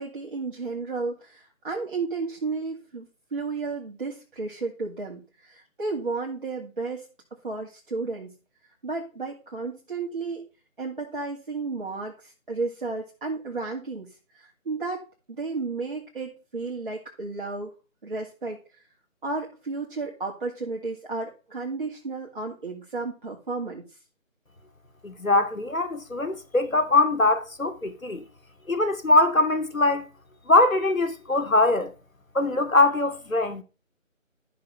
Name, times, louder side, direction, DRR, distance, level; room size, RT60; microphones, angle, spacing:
voice 1, 0.0-7.1 7.4-8.3 8.8-10.4 10.8-17.7 18.0-18.8 19.2-24.0, right 3 dB, 40° right, 2.3 m, -33 dB
voice 2, 25.0-28.2 28.7-30.1 30.5-31.9 32.3-33.6, left 2 dB, 75° left, 2.5 m, -22 dB
13.0 x 6.1 x 5.6 m
figure-of-eight pair, 160°, 41 cm